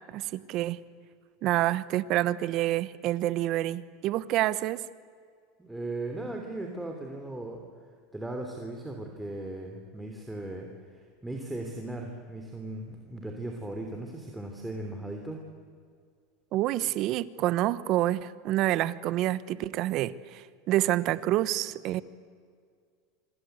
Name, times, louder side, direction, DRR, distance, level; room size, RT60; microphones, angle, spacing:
voice 1, 0.1-0.8 1.4-4.8 16.5-22.0, right 15 dB, 50° right, 17 dB, 1.1 m, -28 dB
voice 2, 5.6-7.6 8.1-15.4, right 2 dB, 5° right, 2 dB, 3.2 m, -37 dB
26.0 x 25.0 x 8.2 m, 2.1 s
supercardioid pair, 120°, 0 cm